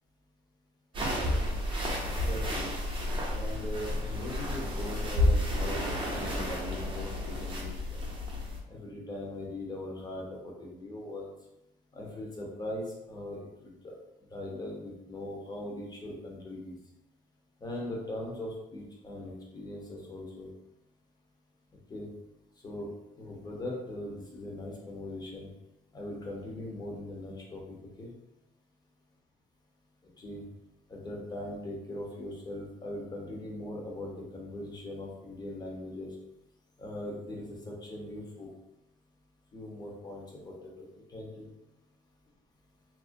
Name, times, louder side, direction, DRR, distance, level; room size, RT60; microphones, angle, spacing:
sound 1, 0.9-8.6, left 1 dB, 30° right, 0.6 m, -31 dB
voice 1, 2.2-2.7 3.3-8.0 8.7-11.3 11.9-13.9 14.3-16.8 17.6-20.5 21.9-22.1 22.6-25.5 25.9-28.1 30.0-30.4 30.9-36.2 36.8-38.5 39.5-41.5, left 1 dB, 25° left, -2 dB, 0.7 m, -40 dB
2.4 x 2.1 x 2.5 m, 0.90 s
cardioid pair, 110°, 17 cm